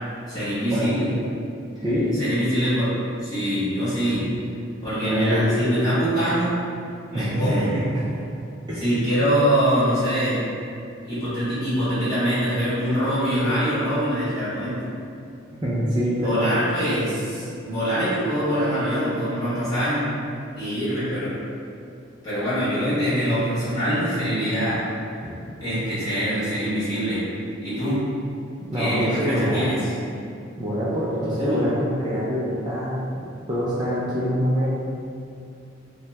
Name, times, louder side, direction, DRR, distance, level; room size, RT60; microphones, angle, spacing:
voice 1, 0.3-1.2 2.2-2.9 3.2-4.2 4.8-6.5 7.1-7.7 8.7-10.4 11.0-14.8 16.2-20.0 20.5-21.3 22.2-24.8 25.6-27.2 27.6-28.0 28.7-29.8 31.4-31.6, equal, 20° left, -14 dB, 1.4 m, -24 dB
voice 2, 1.8-2.1 5.1-5.6 7.1-7.6 7.9-8.0 8.7-8.8 15.6-16.4 28.7-29.7 30.6-33.0 33.5-34.7, equal, 20° right, -9 dB, 0.3 m, -24 dB
2.8 x 2.1 x 3.3 m, 2.5 s
head